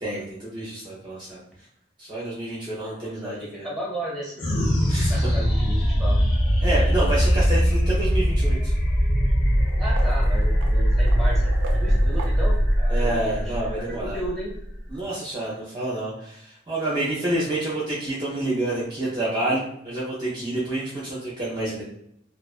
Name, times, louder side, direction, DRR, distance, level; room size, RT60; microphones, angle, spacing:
voice 1, 0.0-1.4 2.0-3.6 4.9-5.3 6.6-8.7 12.9-14.2 14.9-21.8, right 1 dB, 25° right, -7 dB, 0.6 m, -28 dB
voice 2, 3.0-4.4 4.8-6.2 9.8-11.4 11.7-14.5, right 1 dB, ahead, -5 dB, 1.0 m, -34 dB
sound 1, 4.4-15.1, equal, 65° left, 0.9 m, -21 dB
sound 2, 6.3-7.4 8.3-8.4 9.4-13.3, right 3 dB, 85° right, 0.4 m, -42 dB
2.4 x 2.3 x 2.3 m, 0.74 s
head